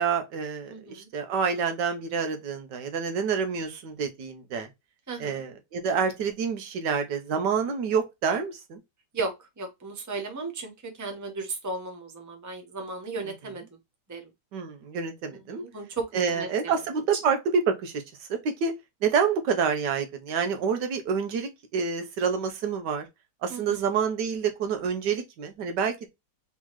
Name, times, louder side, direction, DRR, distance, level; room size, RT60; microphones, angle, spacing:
voice 1, 0.0-4.7 5.2-8.8 14.5-15.6 16.1-17.4 17.7-18.0 18.4-18.7 19.0-23.1 23.4-26.1, right 6 dB, 90° right, 1.5 m, -28 dB
voice 2, 0.7-1.1 5.1-5.4 9.1-13.8 14.1-14.3 15.3-16.7 23.5-23.9, right 3 dB, 15° right, 0.7 m, -35 dB
3.8 x 3.7 x 3.0 m
omnidirectional pair, 1.8 m